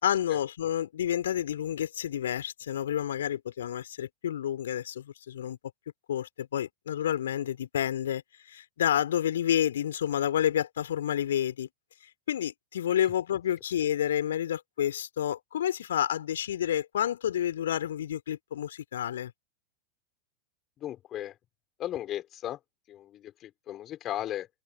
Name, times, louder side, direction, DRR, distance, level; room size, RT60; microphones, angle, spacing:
voice 1, 0.0-5.6 6.1-11.7 12.3-19.3, left 10 dB, 60° left, 3.7 m, -29 dB
voice 2, 20.8-21.4 21.8-22.6 22.9-24.5, left 12 dB, 30° left, 4.4 m, -36 dB
open air
figure-of-eight pair, 90°, 0 cm